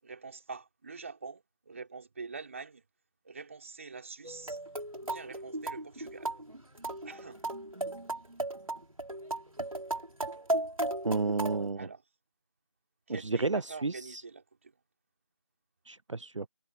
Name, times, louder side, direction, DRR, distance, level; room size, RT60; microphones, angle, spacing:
voice 1, 0.0-2.8 3.2-4.6 5.1-6.3 7.0-7.4 11.8-12.0 13.1-14.7, right 4 dB, 25° right, 5.3 m, -45 dB
sound 1, 4.2-11.7, right 2 dB, 85° right, 3.8 m, -36 dB
voice 2, 11.0-11.9 13.1-14.2 15.9-16.5, right 3 dB, 65° right, 0.5 m, -31 dB
figure-of-eight pair, 170°, 17 cm